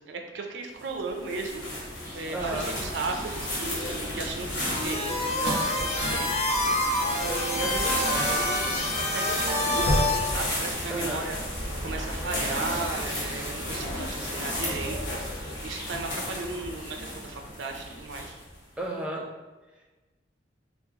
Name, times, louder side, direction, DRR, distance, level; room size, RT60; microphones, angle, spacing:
voice 1, 0.0-1.6 2.1-6.4 7.1-11.3 11.8-15.0 15.6-18.4, right 3 dB, 85° right, 3 dB, 0.4 m, -36 dB
sound 1, 0.8-18.6, left 1 dB, 90° left, 1.0 m, -32 dB
voice 2, 2.3-2.7 10.9-11.2 18.8-19.2 19.7-19.8, right 1 dB, 5° right, -2 dB, 0.4 m, -33 dB
sound 2, 4.6-10.3, left 1 dB, 35° left, 0.7 m, -27 dB
3.7 x 2.3 x 2.8 m, 1.2 s
head